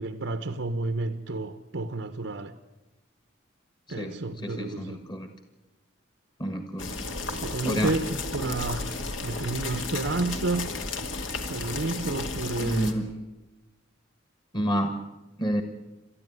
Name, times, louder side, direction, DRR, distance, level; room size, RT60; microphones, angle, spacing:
voice 1, 0.0-2.5 3.9-5.0 7.2-9.0 9.2-10.7 11.5-12.9, right 2 dB, 70° right, 9 dB, 1.0 m, -31 dB
voice 2, 4.0-5.3 6.4-6.9 7.6-7.9 12.6-13.1 14.5-15.0 15.4-15.6, equal, 20° left, 6 dB, 1.6 m, -29 dB
sound 1, 6.8-12.9, left 3 dB, 70° left, 2.4 m, -33 dB
29.0 x 13.5 x 9.6 m, 1.1 s
head